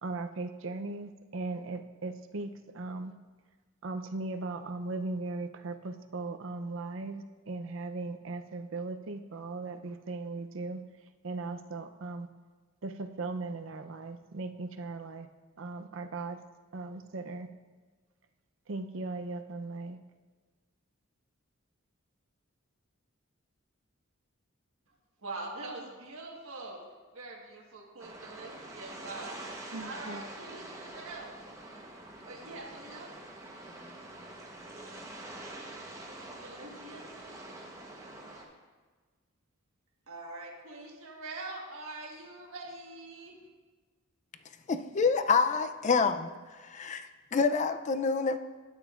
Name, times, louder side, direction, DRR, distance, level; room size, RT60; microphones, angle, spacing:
voice 1, 0.0-3.2 3.8-10.8 11.2-12.3 12.8-15.3 15.6-16.4 16.7-17.5 18.7-20.0 29.7-30.2, right 3 dB, 65° right, 8 dB, 0.6 m, -38 dB
voice 2, 25.2-26.8 27.1-29.4 29.8-31.3 32.2-33.1 36.2-37.1 40.1-43.4, right 2 dB, 85° right, -1 dB, 1.4 m, -43 dB
sound 1, 28.0-38.4, right 1 dB, 15° right, 0.9 m, -46 dB
voice 3, 44.7-46.3 46.6-48.4, left 5 dB, 35° left, 9 dB, 0.4 m, -27 dB
12.5 x 9.0 x 2.4 m, 1.4 s
head